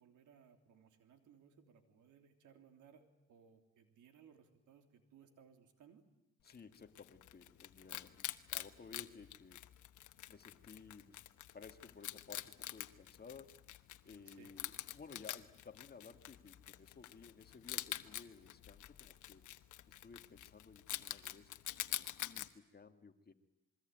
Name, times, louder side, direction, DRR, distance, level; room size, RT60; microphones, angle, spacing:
voice 1, 0.0-6.0 14.2-14.5, right 7 dB, 80° right, 6 dB, 3.4 m, -64 dB
voice 2, 6.4-9.6 10.3-11.2 11.5-13.6 14.0-19.5 19.9-21.5 21.8-23.3, left 5 dB, 30° left, 7 dB, 2.0 m, -56 dB
Wild animals, 6.5-22.5, left 13 dB, 75° left, 1.2 m, -47 dB
27.0 x 22.5 x 9.3 m, 0.93 s
cardioid pair, 90°, 30 cm